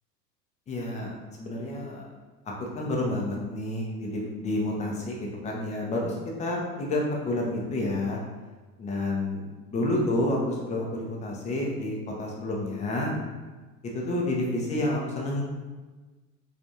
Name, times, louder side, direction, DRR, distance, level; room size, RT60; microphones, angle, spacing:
voice 1, 0.7-2.1 2.6-8.2 8.8-9.4 9.7-13.1 13.9-15.4, left 1 dB, 15° left, -2 dB, 0.5 m, -29 dB
3.4 x 3.3 x 2.6 m, 1.3 s
figure-of-eight pair, 90°, 50 cm